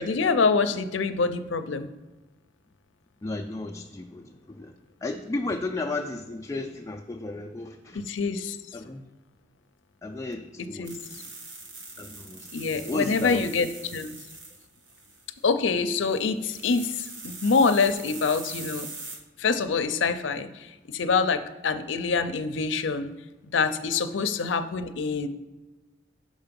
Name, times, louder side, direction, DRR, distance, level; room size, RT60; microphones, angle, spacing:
voice 1, 0.0-1.9 7.9-8.6 10.6-11.0 12.5-14.2 15.4-18.9 19.4-23.1 23.5-25.3, left 4 dB, 85° left, 10 dB, 0.5 m, -25 dB
voice 2, 3.2-4.7 5.0-8.0 8.7-9.0 10.0-11.3 12.0-13.5, left 2 dB, 15° left, 2 dB, 0.3 m, -34 dB
sound 1, 10.8-15.4 15.8-19.2, right 3 dB, 85° right, 1.4 m, -42 dB
6.2 x 4.7 x 5.2 m, 1.1 s
head